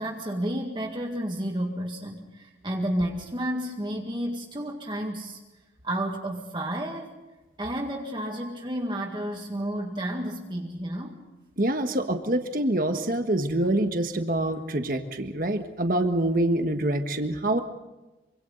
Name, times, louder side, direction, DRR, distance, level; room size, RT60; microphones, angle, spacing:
voice 1, 0.0-5.4 5.8-7.1 7.6-11.2, right 1 dB, 25° right, 2 dB, 1.9 m, -31 dB
voice 2, 11.6-17.6, right 1 dB, 50° right, 6 dB, 1.5 m, -26 dB
26.5 x 25.0 x 4.0 m, 1.1 s
head